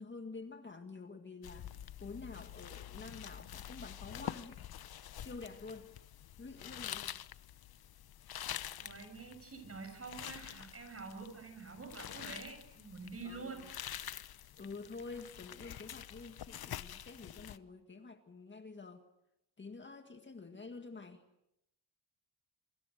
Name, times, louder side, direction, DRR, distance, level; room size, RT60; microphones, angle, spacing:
voice 1, 0.0-4.6 5.2-5.9 6.4-7.2 13.2-13.7 14.6-19.0 19.6-21.2, left 3 dB, 30° left, 6 dB, 1.8 m, -48 dB
sound 1, 1.4-17.6, left 11 dB, 65° left, 0.9 m, -47 dB
voice 2, 8.8-13.7, right 4 dB, 35° right, 7 dB, 7.5 m, -47 dB
26.5 x 25.0 x 6.6 m, 0.84 s
cardioid pair, 115°, 40 cm